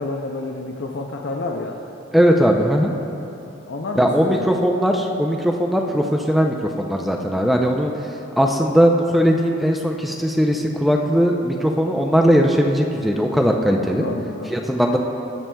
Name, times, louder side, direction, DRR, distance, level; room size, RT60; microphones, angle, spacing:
voice 1, 0.0-1.8 3.7-4.5 14.0-14.5, left 2 dB, 65° left, 1 dB, 0.6 m, -29 dB
voice 2, 2.1-2.9 4.0-7.9 8.4-14.1 14.5-15.0, equal, ahead, 1 dB, 0.4 m, -19 dB
19.5 x 7.5 x 2.2 m, 2.9 s
head